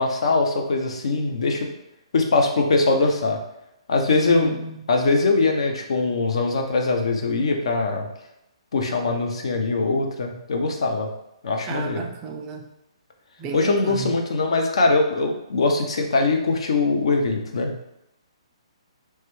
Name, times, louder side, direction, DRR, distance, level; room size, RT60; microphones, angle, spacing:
voice 1, 0.0-1.7 2.1-3.4 3.9-4.5 4.9-8.1 8.7-11.1 11.4-12.1 13.5-17.7, left 3 dB, 70° left, 3 dB, 0.6 m, -22 dB
voice 2, 4.2-4.8 11.7-12.6 13.4-14.1, right 5 dB, 20° right, 2 dB, 0.3 m, -33 dB
3.1 x 2.2 x 3.0 m, 0.86 s
hypercardioid pair, 145°, 3 cm